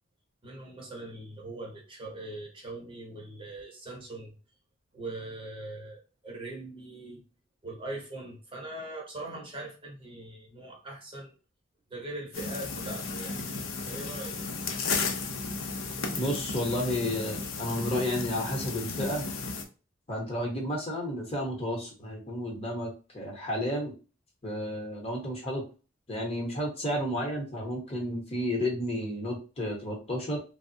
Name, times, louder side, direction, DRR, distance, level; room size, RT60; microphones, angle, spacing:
voice 1, 0.4-4.3 4.9-7.2 7.6-11.3 11.9-13.4 13.9-14.5, right 2 dB, 25° right, -2 dB, 0.7 m, -41 dB
sound 1, 12.3-19.6, left 4 dB, 75° left, 0.5 m, -34 dB
voice 2, 16.2-19.2 20.1-23.9 24.4-25.6 26.1-30.4, equal, 30° left, -1 dB, 0.9 m, -32 dB
3.3 x 2.0 x 2.6 m, 0.34 s
head